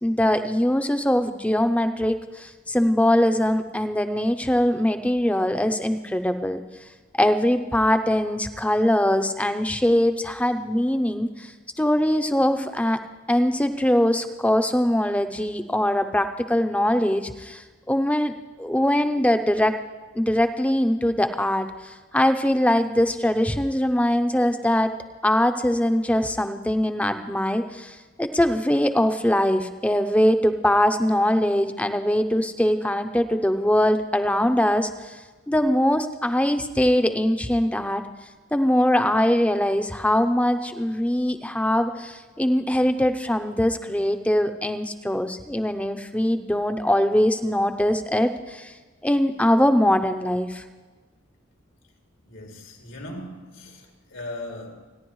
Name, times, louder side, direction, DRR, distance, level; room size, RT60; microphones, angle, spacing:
voice 1, 0.0-6.6 7.1-11.5 11.8-13.0 13.3-18.3 18.6-19.8 20.1-24.9 25.2-35.2 35.5-38.0 38.5-48.7 49.0-50.6, left 1 dB, 5° left, 0.6 m, -22 dB
voice 2, 52.2-54.8, left 1 dB, 85° left, 2.6 m, -38 dB
29.0 x 10.5 x 3.1 m
head